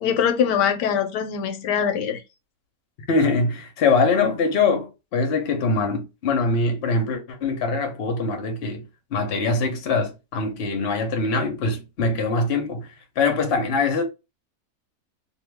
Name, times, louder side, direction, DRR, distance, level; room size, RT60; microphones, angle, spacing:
voice 1, 0.0-2.2, left 8 dB, 80° left, 1.2 m, -22 dB
voice 2, 3.1-8.8 9.1-12.9 13.2-14.0, left 3 dB, 50° left, 0.8 m, -23 dB
2.7 x 2.6 x 3.3 m
omnidirectional pair, 1.8 m